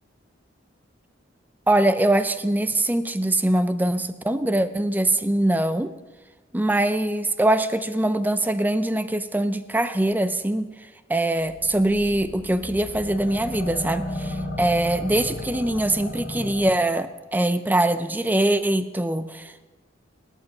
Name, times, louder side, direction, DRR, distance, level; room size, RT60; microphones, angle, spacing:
voice 1, 1.7-5.9 6.5-10.7 11.1-19.6, right 1 dB, 10° right, 12 dB, 0.5 m, -23 dB
sound 1, 11.5-17.1, left 1 dB, 75° left, 3.0 m, -34 dB
18.5 x 8.3 x 5.3 m, 1.2 s
head